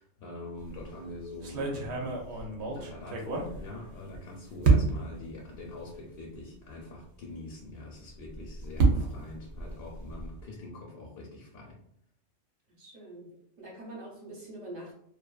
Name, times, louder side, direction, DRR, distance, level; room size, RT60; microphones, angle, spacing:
voice 1, 0.0-11.8, left 2 dB, 65° left, -2 dB, 0.7 m, -44 dB
sound 1, 0.6-0.9 1.4-4.2 4.6-5.2 5.9-6.0 6.3-6.4 8.1-10.4, right 4 dB, 65° right, 0.8 m, -28 dB
voice 2, 12.8-14.9, right 1 dB, 40° right, -4 dB, 0.9 m, -44 dB
2.5 x 2.2 x 2.3 m, 0.71 s
omnidirectional pair, 1.3 m